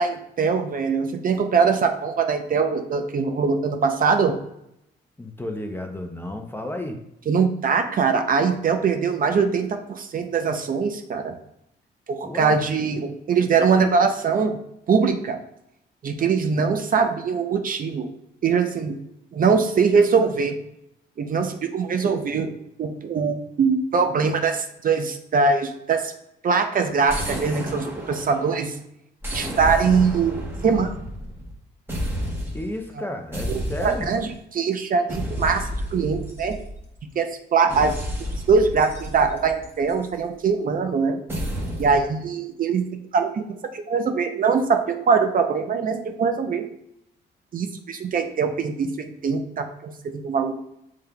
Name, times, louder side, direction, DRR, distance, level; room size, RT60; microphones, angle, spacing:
voice 1, 0.0-4.3 7.3-11.3 12.1-14.6 14.9-15.4 16.0-18.1 18.4-19.0 19.3-20.6 21.2-22.5 22.8-26.1 26.4-28.7 29.3-30.9 33.0-33.1 33.5-35.6 35.9-36.5 37.2-37.9 38.3-41.2 41.8-42.8 43.1-43.4 43.7-46.6 47.5-50.5, right 5 dB, 45° right, 6 dB, 0.5 m, -22 dB
voice 2, 5.2-7.0 12.2-12.6 32.5-34.1, left 1 dB, 10° left, 4 dB, 0.6 m, -32 dB
sound 1, 27.1-28.7 29.2-31.6 31.9-32.7 33.3-34.4 35.1-37.0 37.7-40.1 41.3-42.0, equal, 10° right, 1.1 m, -31 dB
6.4 x 3.6 x 2.2 m, 0.79 s
cardioid pair, 90°, 20 cm